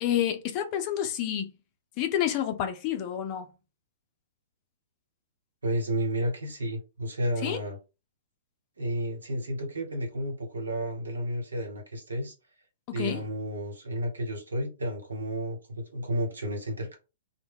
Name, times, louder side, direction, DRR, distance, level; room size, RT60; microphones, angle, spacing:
voice 1, 0.0-1.5 2.0-3.5 7.4-7.6 12.9-13.3, left 10 dB, 40° left, 0.6 m, -29 dB
voice 2, 5.6-7.8 8.8-12.3 12.9-17.0, equal, 85° right, 1.1 m, -32 dB
2.2 x 2.1 x 3.6 m
hypercardioid pair, 120°, 0 cm